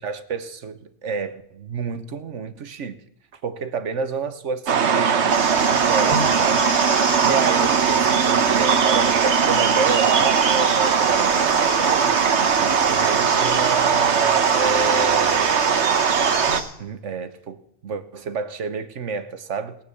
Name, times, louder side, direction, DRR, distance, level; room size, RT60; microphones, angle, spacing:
voice 1, 0.0-3.0 3.4-6.6 7.2-12.2 12.6-16.1 16.8-19.8, right 5 dB, 85° right, 1.4 m, -29 dB
sound 1, 4.7-16.6, right 7 dB, 70° right, 1.2 m, -19 dB
sound 2, 5.3-16.6, equal, 35° left, 7.9 m, -30 dB
19.0 x 8.8 x 6.9 m
omnidirectional pair, 1.2 m